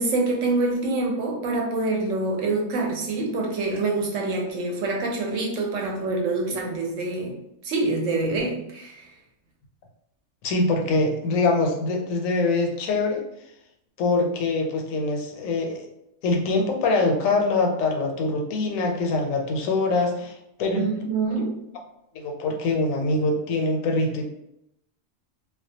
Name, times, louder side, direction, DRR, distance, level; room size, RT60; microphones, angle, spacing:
voice 1, 0.0-7.4 7.6-9.1 20.7-21.7, right 3 dB, 70° right, 0 dB, 1.0 m, -26 dB
voice 2, 10.4-13.2 14.0-15.8 16.2-20.9 22.1-24.3, left 3 dB, 80° left, 2 dB, 1.0 m, -24 dB
2.3 x 2.2 x 2.6 m, 0.83 s
omnidirectional pair, 1.4 m